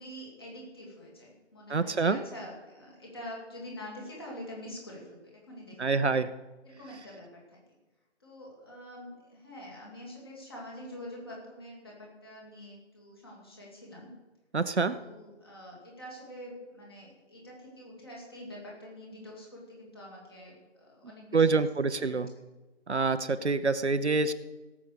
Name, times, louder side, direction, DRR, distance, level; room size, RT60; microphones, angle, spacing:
voice 1, 0.0-5.8 6.6-7.6 8.2-14.1 14.8-21.5 21.8-22.2, left 1 dB, 20° left, -3 dB, 2.7 m, -46 dB
voice 2, 1.7-2.2 5.8-6.3 14.5-15.0 21.3-22.3 22.9-24.3, right 4 dB, 65° right, 11 dB, 0.9 m, -26 dB
17.0 x 7.4 x 6.8 m, 1.1 s
figure-of-eight pair, 175°, 36 cm